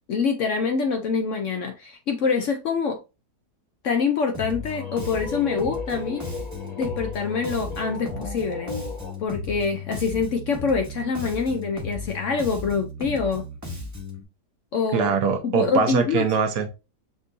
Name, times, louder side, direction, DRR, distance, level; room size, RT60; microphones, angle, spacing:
voice 1, 0.1-3.0 3.8-6.2 6.8-8.7 9.2-13.4 14.7-15.1 15.4-16.3, left 5 dB, 65° left, 0.8 m, -25 dB
sound 1, 4.3-9.2, left 4 dB, 30° left, 0.9 m, -36 dB
Bass guitar, 4.3-14.2, left 2 dB, 15° right, 0.8 m, -35 dB
voice 2, 14.9-16.7, right 6 dB, 70° right, 1.1 m, -22 dB
6.1 x 2.6 x 2.5 m
omnidirectional pair, 1.7 m